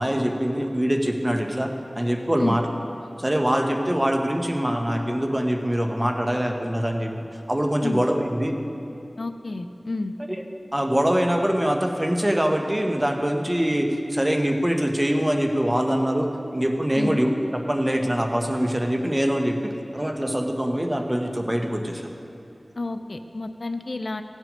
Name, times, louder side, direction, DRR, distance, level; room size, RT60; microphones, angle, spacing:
voice 1, 0.0-2.6 3.2-7.1 7.5-8.6 10.3-10.4 10.7-22.0, equal, 20° right, 3 dB, 1.1 m, -24 dB
voice 2, 9.2-10.1 16.9-17.2 22.8-24.2, left 2 dB, 65° left, 8 dB, 0.5 m, -30 dB
16.5 x 6.2 x 5.2 m, 2.8 s
wide cardioid pair, 40°, 0 cm